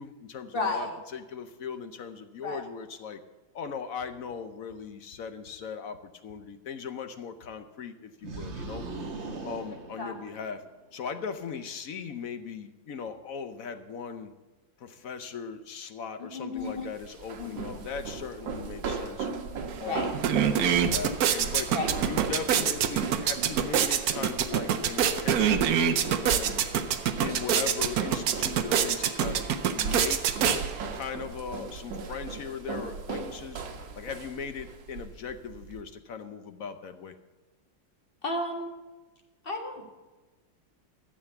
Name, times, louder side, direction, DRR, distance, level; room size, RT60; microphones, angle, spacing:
voice 1, 0.0-3.2 3.5-8.9 9.4-10.6 10.9-14.3 14.8-19.3 19.8-21.7 22.1-26.5 27.2-29.5 29.7-30.2 30.9-33.6 33.9-37.2, left 6 dB, 60° left, 9 dB, 1.0 m, -38 dB
voice 2, 0.5-1.0 2.4-2.6 10.0-10.1 16.2-16.9 17.4-17.7 19.8-20.1 21.7-21.9 38.2-38.7 39.4-39.8, left 2 dB, 30° left, 2 dB, 1.9 m, -32 dB
sound 1, 8.2-10.7, right 3 dB, 40° right, 1.3 m, -39 dB
sound 2, 16.6-35.8, right 5 dB, 85° right, 1.9 m, -37 dB
sound 3, 19.7-19.8 20.1-31.0, right 8 dB, 65° right, 1.1 m, -26 dB
13.0 x 7.5 x 7.0 m, 1.2 s
omnidirectional pair, 2.0 m